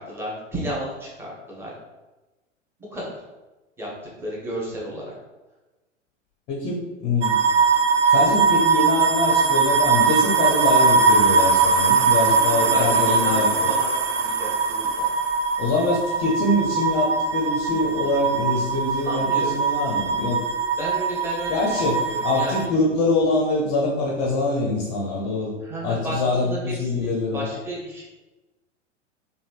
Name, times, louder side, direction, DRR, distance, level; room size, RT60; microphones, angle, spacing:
voice 1, 0.0-1.7 2.8-3.2 3.8-3.9 4.2-5.1 12.3-15.1 19.0-19.5 20.8-22.7 25.6-28.0, right 1 dB, 5° right, -5 dB, 0.7 m, -33 dB
voice 2, 6.5-7.4 8.1-13.7 15.6-20.4 21.5-25.5 25.8-27.5, left 2 dB, 25° left, -2 dB, 0.5 m, -24 dB
sound 1, 7.2-22.7, right 4 dB, 70° right, 0.5 m, -21 dB
3.2 x 2.6 x 2.4 m, 1.1 s
figure-of-eight pair, 95°, 38 cm